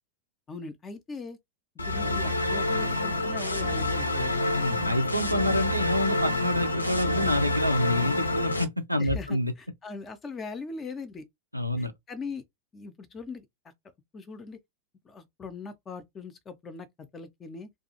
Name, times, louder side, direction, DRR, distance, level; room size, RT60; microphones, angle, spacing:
voice 1, 0.5-1.4 1.9-4.4 9.0-11.2 11.8-12.4 12.7-13.5 14.1-14.6 15.1-17.7, left 4 dB, 20° left, 0.4 m, -40 dB
sound 1, 1.8-8.6, left 2 dB, 80° left, 0.4 m, -27 dB
voice 2, 4.5-9.5 11.5-11.9, left 1 dB, 90° right, 0.4 m, -27 dB
2.3 x 2.3 x 2.7 m
figure-of-eight pair, 90°, 0 cm